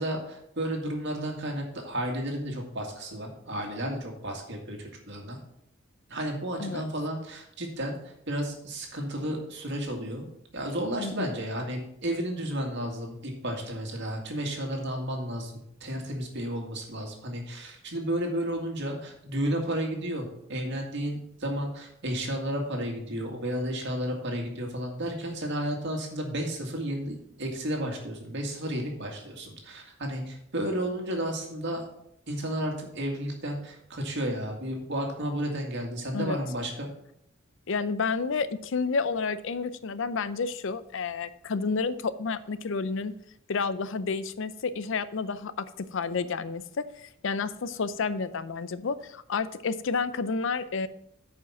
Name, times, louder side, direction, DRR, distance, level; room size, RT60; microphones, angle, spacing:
voice 1, 0.0-5.4 6.1-8.0 8.3-10.3 10.5-15.5 15.8-31.8 32.3-36.9, right 1 dB, 60° right, 1 dB, 2.1 m, -32 dB
voice 2, 37.7-43.2 43.5-50.9, left 4 dB, 65° left, 14 dB, 0.5 m, -30 dB
9.1 x 5.2 x 5.8 m, 0.75 s
head